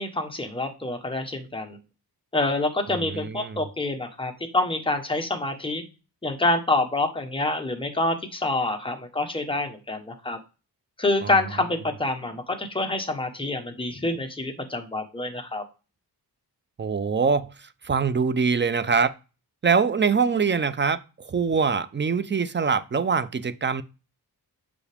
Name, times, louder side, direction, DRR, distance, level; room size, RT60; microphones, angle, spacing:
voice 1, 0.0-1.8 2.3-5.8 6.2-10.4 11.0-15.6, left 2 dB, 15° left, 1.1 m, -27 dB
voice 2, 2.9-3.6 11.2-11.3 16.8-17.5 17.8-19.1 19.6-21.0 21.2-23.8, right 5 dB, 30° right, 0.4 m, -23 dB
7.1 x 4.7 x 3.4 m
wide cardioid pair, 135°, 40 cm